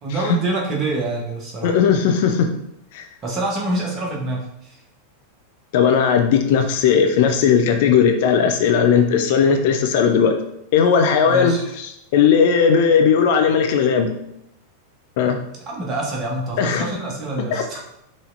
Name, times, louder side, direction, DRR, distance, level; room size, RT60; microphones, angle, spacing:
voice 1, 0.0-1.8 3.2-4.8 11.3-11.7 15.7-17.8, right 2 dB, 25° right, -1 dB, 1.2 m, -26 dB
voice 2, 1.6-2.5 2.9-3.0 5.7-10.3 10.7-14.1 15.2-15.4 16.6-16.9 17.5-17.6, left 7 dB, 50° left, 5 dB, 0.4 m, -17 dB
4.6 x 3.2 x 2.6 m, 0.81 s
figure-of-eight pair, 90°, 0 cm